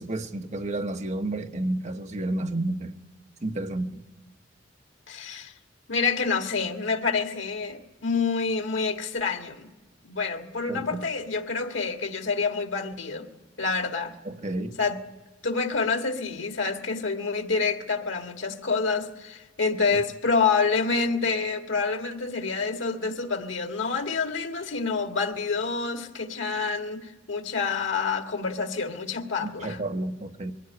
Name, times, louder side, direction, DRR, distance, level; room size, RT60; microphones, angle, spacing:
voice 1, 0.0-2.9 3.4-4.0 10.7-11.1 14.2-14.8 29.4-30.5, right 2 dB, 40° right, 1.1 m, -31 dB
voice 2, 5.1-5.5 5.9-9.7 10.0-13.3 13.6-14.2 14.8-15.0 15.4-29.8, left 4 dB, 85° left, 1.8 m, -27 dB
22.5 x 15.0 x 9.6 m
head